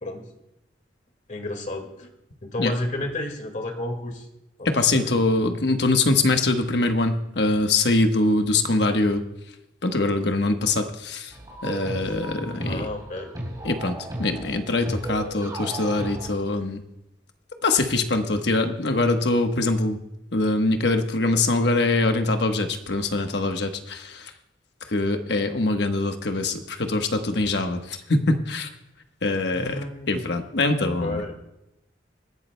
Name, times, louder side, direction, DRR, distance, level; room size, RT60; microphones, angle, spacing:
voice 1, 1.3-2.1 2.4-4.3 4.6-5.2 12.0-12.2 12.6-13.3 29.5-30.2 30.5-31.3, left 1 dB, 45° left, 5 dB, 1.9 m, -32 dB
voice 2, 4.6-9.2 9.8-11.3 11.6-12.9 13.6-16.8 17.6-20.0 20.3-24.3 24.9-28.7 29.2-29.8 30.1-31.3, left 2 dB, 65° left, 6 dB, 1.1 m, -23 dB
sound 1, 11.3-16.3, right 1 dB, 20° right, 3.6 m, -35 dB
26.5 x 11.5 x 2.2 m, 0.88 s
head